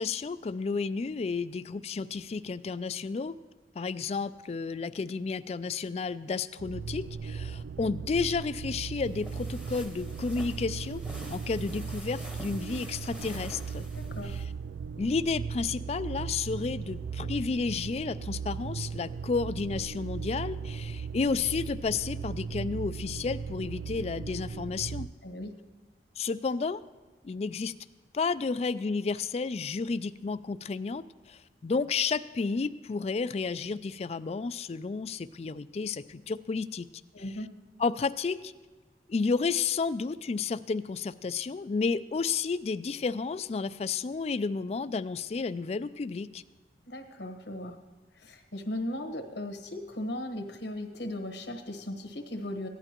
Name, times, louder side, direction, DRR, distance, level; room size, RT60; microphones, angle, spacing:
voice 1, 0.0-3.3 3.8-11.0 11.3-13.9 14.2-14.4 15.0-25.1 26.2-26.8 27.2-27.7 28.1-36.9 37.8-38.5 39.1-46.4, left 4 dB, 35° left, 14 dB, 0.3 m, -31 dB
sound 1, 6.6-25.1, right 6 dB, 85° right, 0.3 m, -37 dB
sound 2, 9.0-14.4, equal, 5° right, 1.0 m, -46 dB
voice 2, 13.9-14.4 25.2-25.5 37.1-37.5 46.9-47.8 48.1-52.7, left 1 dB, 85° left, 5 dB, 1.3 m, -37 dB
16.5 x 11.0 x 3.0 m, 1.3 s
head